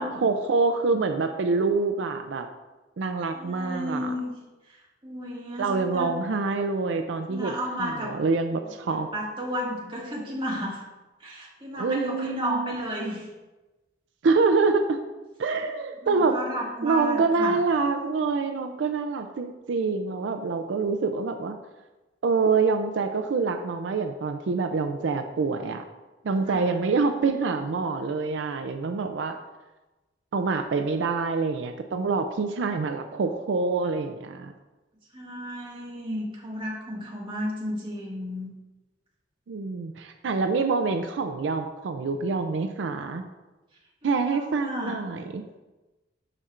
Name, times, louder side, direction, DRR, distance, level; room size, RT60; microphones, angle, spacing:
voice 1, 0.0-2.5 3.0-4.1 5.6-9.1 11.8-12.8 14.2-15.0 15.4-16.4 16.8-21.6 22.2-25.8 26.2-29.4 30.3-34.5 39.5-43.2 44.0-45.4, right 4 dB, 85° right, 6 dB, 0.4 m, -26 dB
voice 2, 3.3-4.3 4.7-4.8 5.0-6.1 7.3-8.1 8.9-10.8 11.2-13.3 16.0-17.6 26.5-26.7 35.1-38.5 44.0-44.9, equal, 30° right, -5 dB, 1.8 m, -33 dB
11.5 x 4.3 x 2.5 m, 1.1 s
head